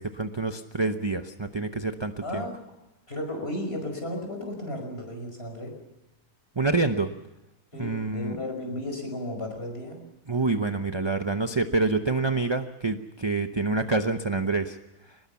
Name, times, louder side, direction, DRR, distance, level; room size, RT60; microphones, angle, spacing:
voice 1, 0.0-2.4 6.6-7.1 7.8-8.4 10.3-14.8, right 3 dB, 25° right, 7 dB, 0.6 m, -27 dB
voice 2, 2.2-2.6 3.1-5.8 7.7-10.0, left 1 dB, 35° left, 4 dB, 5.6 m, -34 dB
24.0 x 20.5 x 7.1 m, 0.95 s
omnidirectional pair, 1.7 m